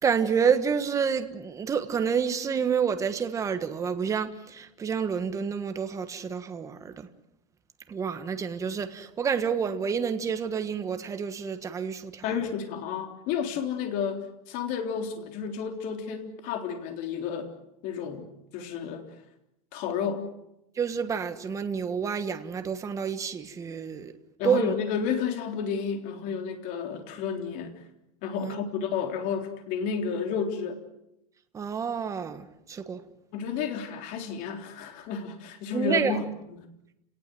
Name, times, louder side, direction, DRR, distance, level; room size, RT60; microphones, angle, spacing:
voice 1, 0.0-7.1 7.9-12.2 20.7-24.1 24.4-24.7 28.4-28.5 31.5-33.0 35.7-36.2, right 6 dB, 15° right, 1.4 m, -28 dB
voice 2, 12.2-17.5 17.8-19.1 19.7-20.3 24.4-27.7 28.2-30.8 33.3-36.2 36.5-36.6, left 6 dB, 45° left, 3.7 m, -31 dB
30.0 x 18.5 x 7.7 m
supercardioid pair, 160°, 19 cm